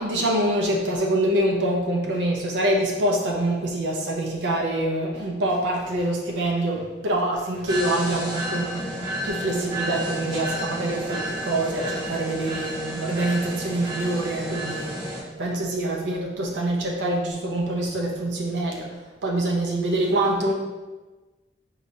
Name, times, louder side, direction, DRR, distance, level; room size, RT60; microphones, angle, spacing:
voice 1, 0.0-8.9 9.2-15.0 15.4-18.9 19.2-20.5, right 1 dB, 85° right, -1 dB, 0.5 m, -25 dB
sound 1, 7.7-15.2, right 1 dB, 25° right, 1.0 m, -31 dB
4.5 x 2.8 x 2.6 m, 1.2 s
head